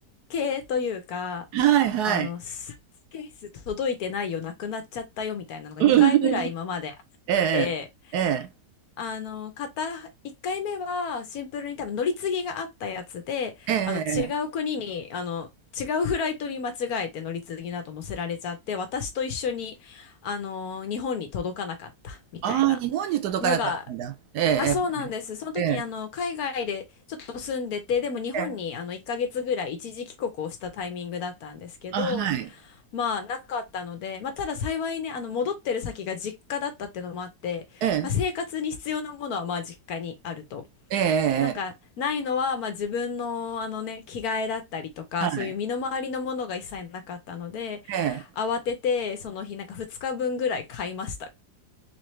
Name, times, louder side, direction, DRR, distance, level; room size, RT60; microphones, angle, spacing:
voice 1, 0.3-1.5 2.0-2.7 3.1-7.0 7.5-7.8 9.0-10.1 10.4-15.5 15.7-22.8 23.4-23.8 24.6-32.3 32.9-40.7 41.4-51.3, left 6 dB, 70° left, 1.2 m, -31 dB
voice 2, 1.5-2.3 5.8-6.5 7.3-7.7 8.1-8.5 13.7-14.3 22.4-24.8 25.6-25.8 28.3-28.5 31.9-32.5 37.8-38.1 40.9-41.5 45.2-45.5 47.9-48.2, right 10 dB, 75° right, 1.2 m, -23 dB
3.9 x 2.9 x 3.1 m
omnidirectional pair, 1.8 m